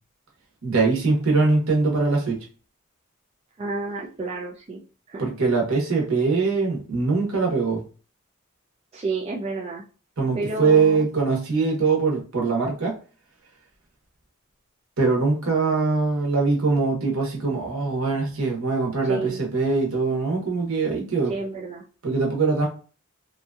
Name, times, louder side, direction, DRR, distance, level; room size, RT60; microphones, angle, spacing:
voice 1, 0.6-2.4 5.2-7.8 10.2-13.0 15.0-21.3 22.0-22.7, right 4 dB, 75° right, 0 dB, 1.0 m, -22 dB
voice 2, 3.6-4.8 5.1-5.3 8.9-9.8 10.3-11.0 19.1-19.4 21.3-21.8, right 3 dB, 25° right, -3 dB, 0.3 m, -30 dB
2.8 x 2.6 x 2.3 m, 0.37 s
head